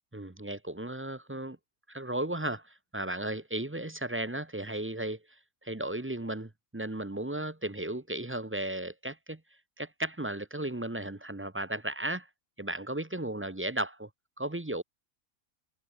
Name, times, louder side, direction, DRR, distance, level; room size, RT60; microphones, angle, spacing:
voice 1, 0.1-1.6 1.9-9.4 9.8-12.3 12.6-14.1 14.4-14.8, right 1 dB, 10° right, 0.8 m, -35 dB
omnidirectional pair, 1.4 m